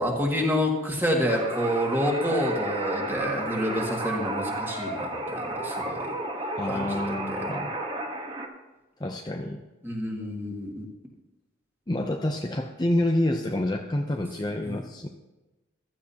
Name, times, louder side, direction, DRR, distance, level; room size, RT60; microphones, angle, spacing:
voice 1, 0.0-6.1 6.7-7.0 7.3-7.4 9.8-10.9 14.7-14.8, equal, 10° right, -1 dB, 2.1 m, -28 dB
sound 1, 1.3-8.5, right 2 dB, 25° right, 1.2 m, -32 dB
voice 2, 6.6-7.7 9.0-9.6 11.9-15.1, left 1 dB, 20° left, 3 dB, 0.6 m, -28 dB
15.0 x 13.5 x 2.9 m, 1.1 s
head